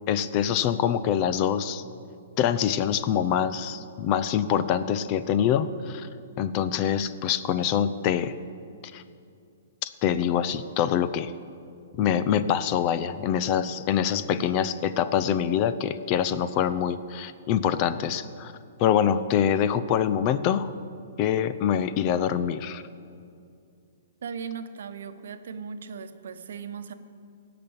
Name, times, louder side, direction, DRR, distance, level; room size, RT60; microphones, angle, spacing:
voice 1, 0.1-1.8 2.4-6.1 6.4-8.3 8.9-9.0 9.8-11.3 11.9-18.5 18.8-20.7 21.2-22.8, left 9 dB, 40° left, 14 dB, 0.6 m, -25 dB
voice 2, 24.2-26.9, right 6 dB, 70° right, 9 dB, 1.0 m, -37 dB
17.0 x 6.0 x 8.9 m, 2.4 s
hypercardioid pair, 125°, 0 cm